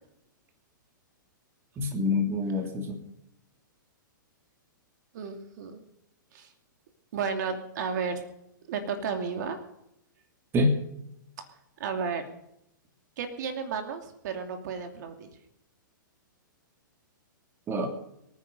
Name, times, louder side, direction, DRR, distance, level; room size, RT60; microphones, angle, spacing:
voice 1, 1.8-3.0 10.5-10.8 17.7-17.9, left 2 dB, 20° right, 4 dB, 2.8 m, -26 dB
voice 2, 5.1-5.8 6.3-6.5 7.1-8.2 8.7-9.6 11.8-12.2 13.2-15.3, right 6 dB, 60° right, 5 dB, 2.6 m, -33 dB
24.5 x 9.9 x 5.4 m, 0.81 s
hypercardioid pair, 125°, 11 cm